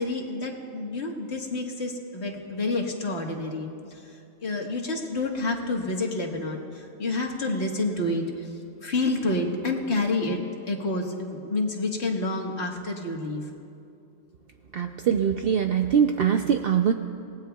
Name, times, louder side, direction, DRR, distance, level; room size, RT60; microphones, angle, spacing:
voice 1, 0.0-3.7 4.4-6.6 7.0-8.2 8.8-10.4 10.7-13.4, left 2 dB, 65° left, 1 dB, 1.7 m, -28 dB
voice 2, 14.7-16.9, right 8 dB, 60° right, 6 dB, 0.7 m, -22 dB
28.5 x 18.5 x 2.3 m, 2.6 s
omnidirectional pair, 1.2 m